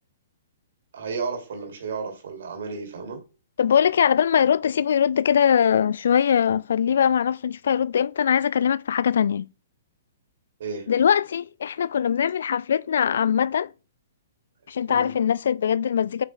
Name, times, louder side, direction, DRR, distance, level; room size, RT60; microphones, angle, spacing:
voice 1, 0.9-3.2 10.6-10.9 14.9-15.1, right 4 dB, 55° right, 2.6 m, -33 dB
voice 2, 3.6-9.5 10.9-13.7 14.7-16.2, left 8 dB, 55° left, 0.3 m, -21 dB
8.1 x 5.8 x 2.3 m
figure-of-eight pair, 115°, 0 cm